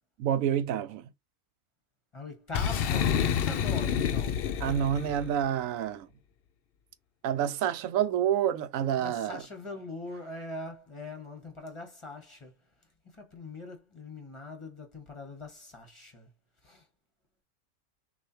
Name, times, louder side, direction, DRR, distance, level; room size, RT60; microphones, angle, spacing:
voice 1, 0.2-1.0 4.6-6.1 7.2-9.4, right 10 dB, 90° right, 1.0 m, -28 dB
voice 2, 2.1-4.5 9.0-12.5 13.1-16.3 16.6-16.8, left 2 dB, 25° left, 1.2 m, -42 dB
Boom, 2.5-5.3, left 8 dB, 65° left, 0.6 m, -28 dB
6.3 x 2.7 x 2.8 m
omnidirectional pair, 1.4 m